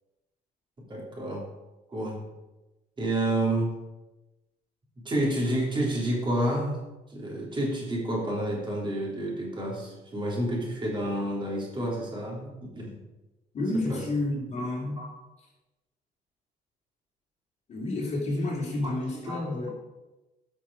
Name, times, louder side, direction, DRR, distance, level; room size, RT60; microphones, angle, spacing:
voice 1, 0.9-1.5 1.9-2.2 3.0-3.7 5.0-6.8 7.1-12.5 12.7-13.0 13.9-14.0 15.0-15.1 18.8-19.7, right 1 dB, 30° right, -3 dB, 3.5 m, -29 dB
voice 2, 13.5-15.0 17.7-19.7, left 2 dB, 40° left, -2 dB, 3.0 m, -30 dB
11.0 x 6.1 x 4.8 m, 1.0 s
cardioid pair, 110°, 17 cm